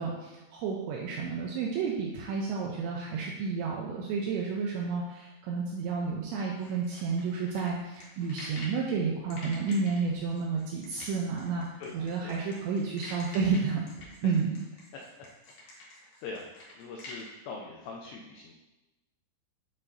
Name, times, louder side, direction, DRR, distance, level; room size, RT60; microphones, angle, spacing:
voice 1, 0.0-14.6, right 5 dB, 85° right, -1 dB, 2.6 m, -31 dB
sound 1, 6.6-8.8 9.3-17.3, left 2 dB, 70° left, 1.7 m, -47 dB
voice 2, 11.8-12.4 16.0-16.5 16.8-18.5, left 4 dB, 85° left, -1 dB, 2.5 m, -42 dB
9.6 x 4.2 x 2.6 m, 1.0 s
omnidirectional pair, 5.7 m